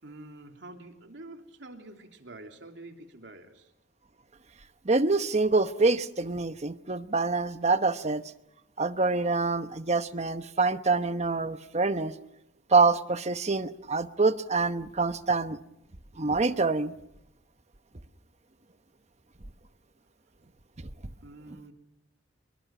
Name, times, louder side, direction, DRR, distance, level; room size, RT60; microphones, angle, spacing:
voice 1, 0.0-3.7 21.2-21.7, right 2 dB, 70° right, 4 dB, 3.2 m, -47 dB
voice 2, 4.8-8.2 8.8-12.1 12.7-15.6 16.2-16.9, right 3 dB, 35° right, 11 dB, 1.0 m, -26 dB
27.0 x 22.5 x 6.0 m, 0.85 s
head